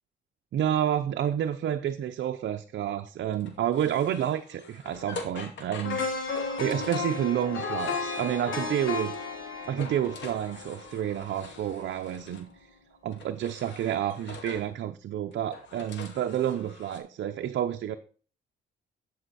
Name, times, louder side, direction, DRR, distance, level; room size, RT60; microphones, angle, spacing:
voice 1, 0.5-6.0 6.6-9.2 9.6-12.5 13.0-18.0, right 10 dB, 65° right, 6 dB, 0.7 m, -29 dB
sound 1, 3.3-9.4 9.6-12.5 13.1-14.8 15.3-17.0, left 4 dB, 65° left, 2.3 m, -45 dB
sound 2, 5.8-11.9 12.2-12.4, left 4 dB, 80° left, 2.9 m, -34 dB
11.5 x 5.6 x 4.2 m, 0.39 s
cardioid pair, 90°, 20 cm